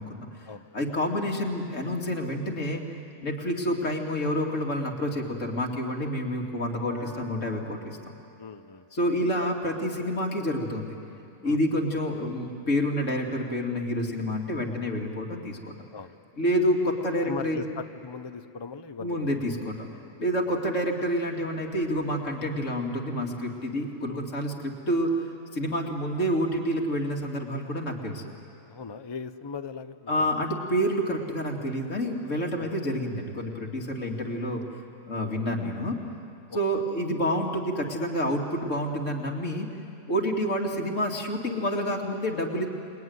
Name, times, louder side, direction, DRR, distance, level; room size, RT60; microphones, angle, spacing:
voice 1, 0.0-2.8 3.2-8.0 8.9-11.0 11.4-15.7 16.4-17.6 19.0-19.9 20.2-25.1 25.5-28.2 30.1-34.6 35.1-36.0 36.5-39.7 40.1-42.7, equal, 75° left, 0 dB, 2.9 m, -28 dB
Piano, 6.9-13.5 14.3-14.4, right 5 dB, 35° right, 4.1 m, -53 dB
voice 2, 8.4-8.9 11.4-11.6 15.9-16.2 17.3-19.6 20.5-20.6 24.0-24.2 28.6-30.3 32.5-32.7 36.5-36.8, left 5 dB, 30° left, 10 dB, 0.5 m, -39 dB
29.0 x 20.5 x 9.5 m, 2.6 s
omnidirectional pair, 1.3 m